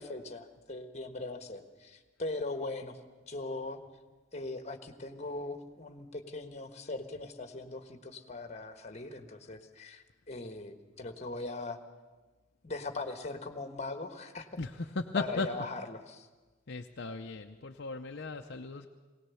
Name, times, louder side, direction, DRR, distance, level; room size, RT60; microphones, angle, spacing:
voice 1, 0.0-3.0 3.3-3.8 4.3-11.8 12.6-14.5 15.1-16.3, left 2 dB, 35° left, 7 dB, 1.4 m, -40 dB
voice 2, 14.6-15.5 16.7-18.9, left 3 dB, 55° left, 3 dB, 0.7 m, -36 dB
20.5 x 18.0 x 7.1 m, 1.3 s
head